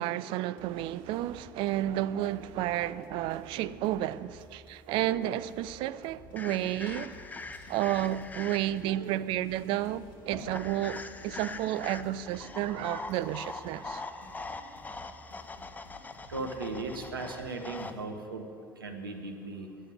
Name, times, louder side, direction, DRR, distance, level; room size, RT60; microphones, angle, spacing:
voice 1, 0.0-7.2 7.7-14.0, right 13 dB, 50° right, 0.4 m, -31 dB
sound 1, 0.6-18.0, left 2 dB, 45° left, 1.7 m, -54 dB
sound 2, 6.4-8.9 10.5-17.9, left 3 dB, 15° left, 0.6 m, -43 dB
Liquid, 6.4-13.4, right 1 dB, 25° right, 3.1 m, -54 dB
voice 2, 16.3-19.8, right 3 dB, 80° right, 1.1 m, -37 dB
9.5 x 8.1 x 9.4 m
figure-of-eight pair, 65°, 11 cm